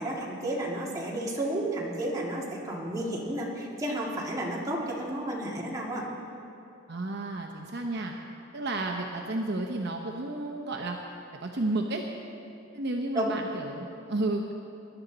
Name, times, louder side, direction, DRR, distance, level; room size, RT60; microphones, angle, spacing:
voice 1, 0.0-6.0 13.1-13.3, right 1 dB, 20° right, -4 dB, 2.2 m, -32 dB
voice 2, 6.9-8.1 8.5-11.0 11.4-12.1 12.7-14.5, right 2 dB, 55° right, 2 dB, 0.8 m, -32 dB
20.5 x 11.0 x 4.0 m, 2.7 s
head